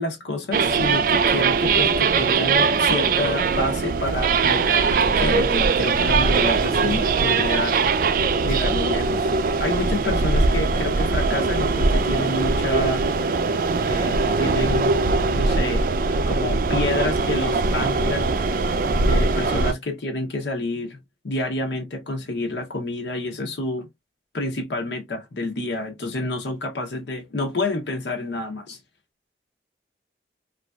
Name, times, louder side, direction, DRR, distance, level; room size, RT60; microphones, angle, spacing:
voice 1, 0.0-7.8 8.4-13.0 13.4-14.9 15.3-15.8 16.3-18.3 19.0-21.0 21.2-23.9 24.3-28.8, left 2 dB, 80° left, 0.7 m, -28 dB
sound 1, 0.5-19.7, right 4 dB, 50° right, 0.3 m, -21 dB
3.1 x 2.5 x 2.2 m
head